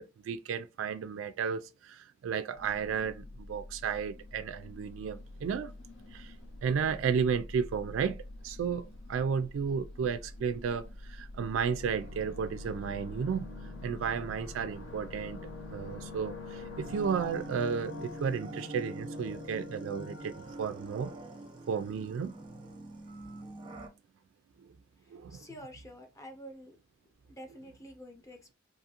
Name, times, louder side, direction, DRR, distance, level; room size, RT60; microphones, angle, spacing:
voice 1, 0.0-5.7 6.1-6.3 6.6-13.5 13.8-15.4 15.7-21.1 21.7-22.3 25.1-25.5, right 6 dB, 90° right, 0.3 m, -33 dB
sound 1, 2.5-18.4, left 1 dB, 85° left, 0.5 m, -48 dB
sound 2, 11.8-21.5, left 3 dB, 65° left, 0.8 m, -46 dB
sound 3, 16.8-23.9, right 2 dB, 25° right, 0.5 m, -45 dB
voice 2, 25.0-26.8 27.3-28.5, equal, 15° left, 0.6 m, -48 dB
2.6 x 2.5 x 2.8 m
head